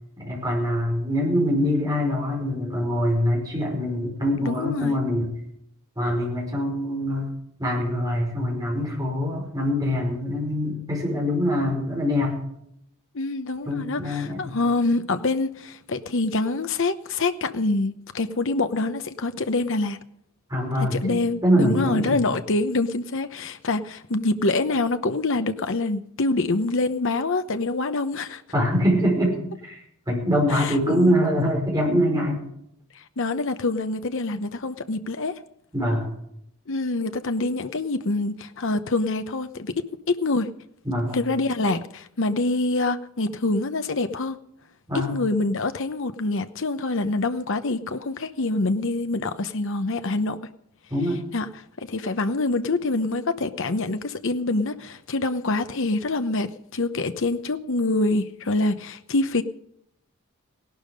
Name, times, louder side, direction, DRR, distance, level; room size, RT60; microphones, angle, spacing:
voice 1, 0.2-5.3 6.0-7.3 7.6-12.4 13.7-14.6 20.5-22.2 28.5-29.8 30.1-32.4 35.7-36.1 40.9-41.2 44.9-45.2 50.9-51.2, equal, 15° right, -1 dB, 5.3 m, -24 dB
voice 2, 4.4-5.0 13.1-20.0 20.8-28.4 30.5-31.2 32.9-35.4 36.7-40.5 41.1-44.4 44.9-50.4 51.3-59.4, left 2 dB, 60° left, 9 dB, 0.9 m, -26 dB
17.0 x 12.0 x 5.3 m, 0.73 s
head